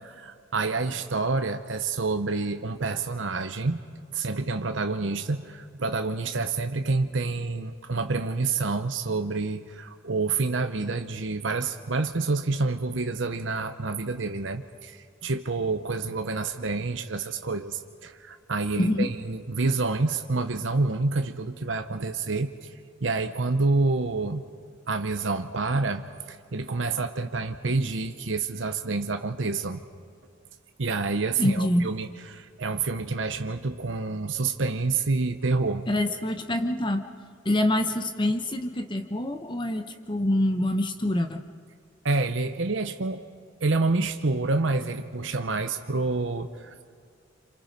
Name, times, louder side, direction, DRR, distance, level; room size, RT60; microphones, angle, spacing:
voice 1, 0.1-3.8 4.1-22.7 23.0-24.4 24.9-29.8 30.8-35.9 42.0-43.2 43.6-46.7, right 3 dB, 75° right, 7 dB, 0.9 m, -28 dB
voice 2, 18.8-19.1 31.4-31.9 35.9-37.1 37.4-41.4, left 1 dB, 25° left, 6 dB, 0.9 m, -25 dB
27.5 x 27.5 x 5.3 m, 2.1 s
head